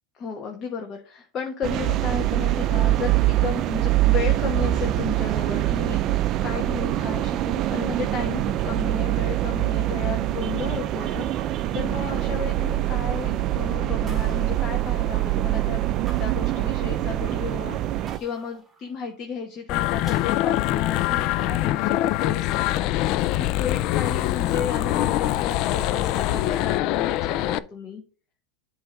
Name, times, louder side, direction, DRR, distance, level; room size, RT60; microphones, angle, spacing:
voice 1, 0.1-15.8 16.2-28.0, left 6 dB, 35° left, 2 dB, 1.2 m, -34 dB
sound 1, 1.6-18.2, right 14 dB, 45° right, 0.4 m, -24 dB
sound 2, 14.1-15.4 16.1-17.2 18.1-19.3 20.1-21.2, right 1 dB, 5° right, 1.7 m, -49 dB
sound 3, 19.7-27.6, left 14 dB, 55° left, 0.3 m, -24 dB
7.7 x 2.9 x 5.1 m, 0.36 s
hypercardioid pair, 105°, 0 cm